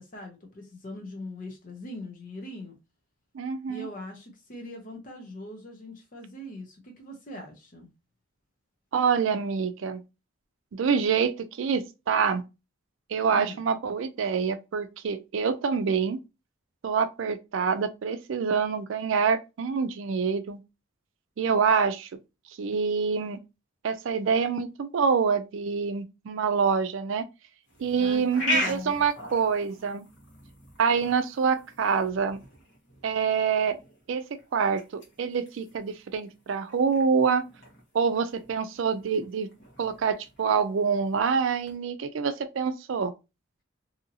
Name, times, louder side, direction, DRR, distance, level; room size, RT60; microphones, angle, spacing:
voice 1, 0.0-2.8 3.7-7.9 13.3-13.7 28.0-29.0, left 1 dB, 40° left, 0.6 m, -41 dB
voice 2, 3.3-3.9 8.9-10.0 10.7-12.4 13.1-16.2 16.8-20.6 21.4-22.1 22.6-23.4 23.8-27.2 27.8-30.1 30.8-32.4 33.0-33.8 34.1-37.4 37.9-39.5 39.8-43.1, right 6 dB, 70° right, 0.4 m, -26 dB
sound 1, 27.7-41.8, equal, 65° left, 1.1 m, -39 dB
2.8 x 2.6 x 2.6 m
head